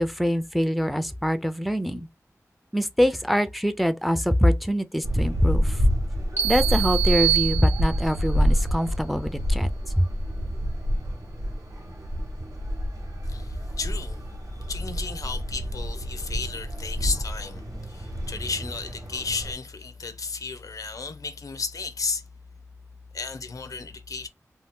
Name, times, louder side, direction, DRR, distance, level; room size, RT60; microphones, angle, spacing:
voice 1, 0.0-2.1 2.7-5.8 6.4-9.7 10.0-10.1, equal, ahead, 0.4 m, -24 dB
sound 1, 5.0-19.5, equal, 85° right, 0.9 m, -28 dB
sound 2, 6.4-8.2, right 13 dB, 45° right, 0.9 m, -26 dB
voice 2, 13.3-14.2 14.7-22.2 23.1-24.3, left 4 dB, 85° left, 0.5 m, -33 dB
2.7 x 2.2 x 3.4 m
wide cardioid pair, 70°, 6 cm